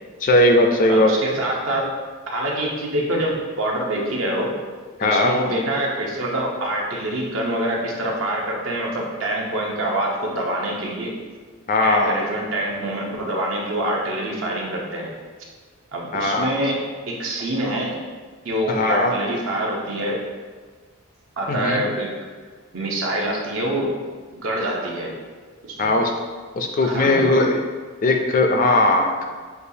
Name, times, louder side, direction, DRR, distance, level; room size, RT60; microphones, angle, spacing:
voice 1, 0.2-1.1 5.0-5.3 11.7-12.2 16.1-16.5 18.7-19.1 21.5-21.8 25.8-26.1 26.6-27.6 28.0-29.2, left 2 dB, 35° left, 3 dB, 0.3 m, -18 dB
voice 2, 0.9-1.9 2.3-4.5 5.0-11.2 11.8-15.1 15.9-18.0 18.4-20.2 21.4-22.1 22.7-23.9 24.3-25.1 25.6-25.9 26.8-27.3, right 1 dB, 60° right, -2 dB, 0.7 m, -25 dB
6.6 x 2.3 x 2.7 m, 1.5 s
head